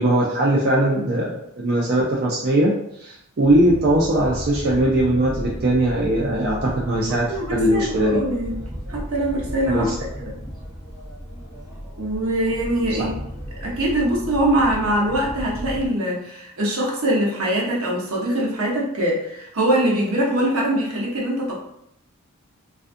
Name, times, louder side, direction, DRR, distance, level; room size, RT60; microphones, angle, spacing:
voice 1, 0.0-2.7 3.0-7.3 7.5-8.2 9.7-9.9, right 1 dB, 45° right, -4 dB, 0.4 m, -20 dB
sound 1, 3.4-15.9, equal, 15° right, 0.8 m, -34 dB
voice 2, 7.3-8.6 8.9-9.8 12.0-13.1 13.6-21.5, right 1 dB, 75° right, -3 dB, 0.8 m, -23 dB
2.4 x 2.3 x 2.5 m, 0.76 s
head